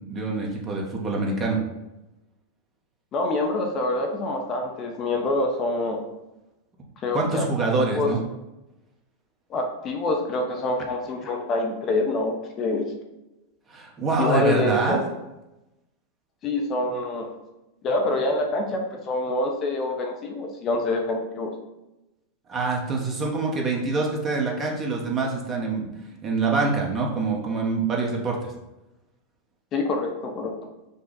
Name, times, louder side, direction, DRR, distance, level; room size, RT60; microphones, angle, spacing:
voice 1, 0.1-1.6 7.1-8.2 13.7-15.0 22.5-25.9 26.2-28.4, right 3 dB, 30° right, -1 dB, 1.2 m, -25 dB
voice 2, 3.1-6.0 7.0-7.5 7.9-8.1 9.5-12.9 14.2-15.0 16.4-17.3 17.8-21.5 29.7-30.7, left 2 dB, 40° left, 3 dB, 0.8 m, -26 dB
5.3 x 2.4 x 3.9 m, 0.97 s
hypercardioid pair, 100°, 0 cm